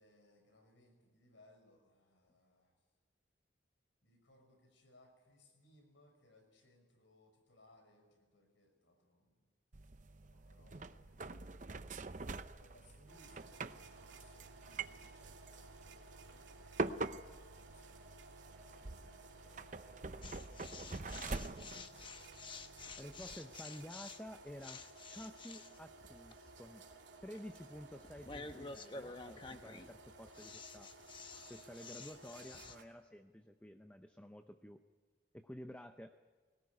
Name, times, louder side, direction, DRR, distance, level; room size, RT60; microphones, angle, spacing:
voice 1, 0.0-2.7 4.0-9.4 10.3-11.5 11.9-12.1 12.5-18.2 18.5-20.7 21.0-22.0, left 1 dB, 85° left, 4 dB, 5.9 m, -68 dB
sound 1, 9.7-23.4, right 3 dB, 40° right, 0.7 m, -46 dB
sound 2, 13.1-32.8, right 3 dB, 75° right, 2.8 m, -58 dB
sound 3, 20.2-32.8, left 4 dB, 25° left, 1.0 m, -51 dB
voice 2, 23.0-26.9 27.2-30.9 31.5-34.8 35.3-36.2, equal, 5° left, 7 dB, 0.6 m, -51 dB
22.0 x 19.0 x 9.6 m, 1.4 s
head